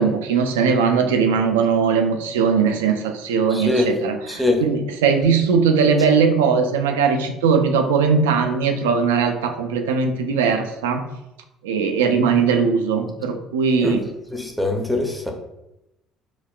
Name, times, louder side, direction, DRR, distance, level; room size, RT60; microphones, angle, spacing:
voice 1, 0.0-11.0 11.6-14.0, right 5 dB, 75° right, 6 dB, 0.3 m, -19 dB
voice 2, 3.5-3.9 4.3-4.6 13.8-14.0 14.3-15.3, left 2 dB, 5° left, 1 dB, 0.6 m, -22 dB
3.8 x 2.1 x 2.2 m, 0.90 s
figure-of-eight pair, 55°, 0 cm